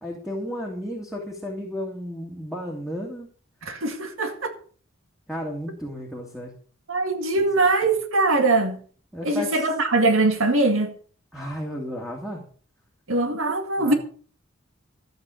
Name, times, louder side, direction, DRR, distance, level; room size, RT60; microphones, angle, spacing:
voice 1, 0.0-3.3 5.3-6.5 7.4-7.5 9.1-9.7 11.3-12.4 13.8-13.9, equal, ahead, 2.4 m, -33 dB
voice 2, 3.7-4.5 6.9-8.8 9.2-10.9 13.1-13.9, right 2 dB, 75° right, 2.0 m, -22 dB
13.5 x 8.5 x 6.5 m
head